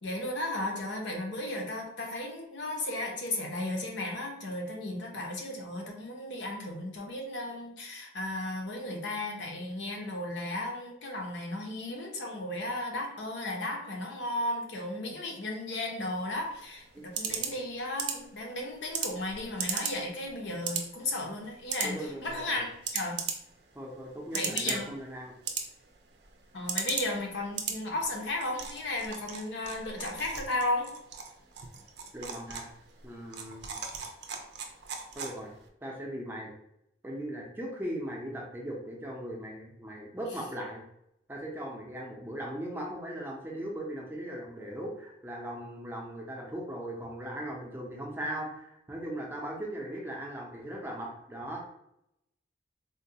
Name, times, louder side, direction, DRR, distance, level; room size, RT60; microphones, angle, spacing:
voice 1, 0.0-23.2 24.3-24.9 26.5-30.9, left 1 dB, 75° left, 1 dB, 0.7 m, -35 dB
sound 1, 16.3-35.7, right 6 dB, 65° right, 0.4 m, -39 dB
voice 2, 21.8-22.6 23.7-25.3 32.1-32.7 33.0-33.7 35.1-35.5 35.8-36.5 37.0-40.8 41.3-51.7, right 1 dB, 10° right, -1 dB, 0.5 m, -38 dB
3.8 x 2.2 x 2.7 m, 0.79 s
head